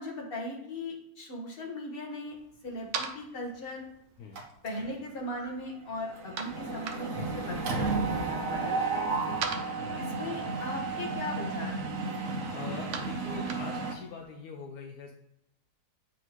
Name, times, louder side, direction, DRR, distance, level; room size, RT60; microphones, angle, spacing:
voice 1, 0.0-2.4 2.6-3.9 4.6-9.4 10.0-12.0, left 1 dB, 35° left, -1 dB, 1.5 m, -39 dB
sound 1, 2.3-14.2, right 5 dB, 75° right, 1.2 m, -44 dB
Mechanisms, 4.4-5.0 5.3-5.5 5.8-13.9, right 3 dB, 60° right, 1.2 m, -33 dB
voice 2, 9.7-10.1 12.2-15.1, left 5 dB, 70° left, 2 dB, 1.1 m, -43 dB
8.9 x 3.7 x 3.1 m, 0.82 s
omnidirectional pair, 1.7 m